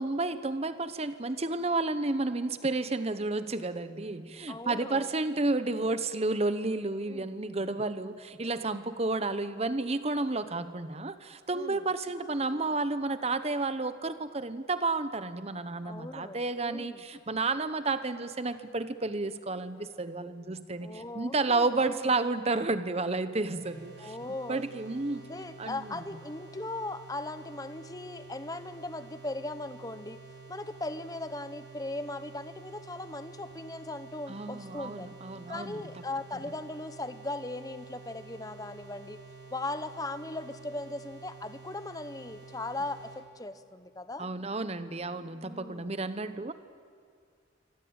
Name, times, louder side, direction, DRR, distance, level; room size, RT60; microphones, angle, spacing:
voice 1, 0.0-24.2 24.5-25.2 25.6-26.0 34.3-35.8 44.2-46.5, right 3 dB, 35° right, 12 dB, 1.0 m, -31 dB
voice 2, 4.5-5.1 5.7-5.9 7.1-7.3 11.5-11.8 15.8-17.0 20.8-22.1 24.0-24.6 25.2-30.2 30.5-35.1 35.5-39.2 39.5-44.3 45.4-45.9, left 2 dB, 20° left, 11 dB, 1.0 m, -38 dB
sound 1, 23.6-43.2, right 4 dB, 65° right, 7.5 m, -50 dB
26.0 x 25.0 x 8.9 m, 2.2 s
head